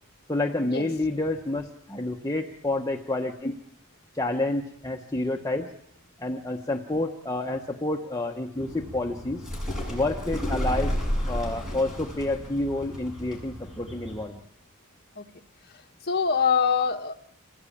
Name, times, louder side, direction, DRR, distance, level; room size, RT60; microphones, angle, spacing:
voice 1, 0.3-3.5 4.1-5.7 6.2-9.4 9.9-10.9 11.3-14.4, left 2 dB, 15° left, 1 dB, 1.1 m, -29 dB
sound 1, 8.5-14.2, equal, ahead, 7.1 m, -32 dB
voice 2, 16.0-17.2, left 6 dB, 45° left, 3 dB, 1.6 m, -24 dB
27.0 x 18.5 x 8.7 m, 0.74 s
head